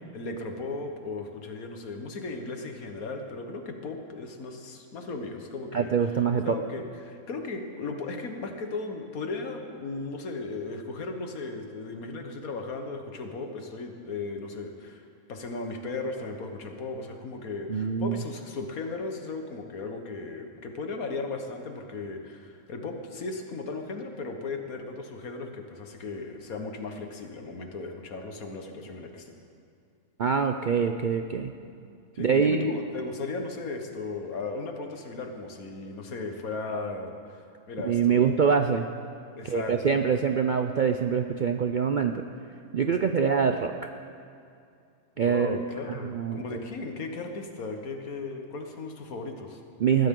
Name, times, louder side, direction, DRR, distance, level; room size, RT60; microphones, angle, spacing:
voice 1, 0.1-29.3 32.1-38.4 39.4-40.1 43.0-43.3 45.2-49.6, left 3 dB, 85° left, 4 dB, 1.8 m, -36 dB
voice 2, 5.7-6.5 17.7-18.2 30.2-31.5 32.2-32.7 37.8-38.9 39.5-42.2 42.7-43.7 45.2-45.6 45.9-46.6 49.8-50.1, right 6 dB, 60° right, 6 dB, 0.5 m, -24 dB
20.5 x 14.5 x 3.8 m, 2.5 s
omnidirectional pair, 1.5 m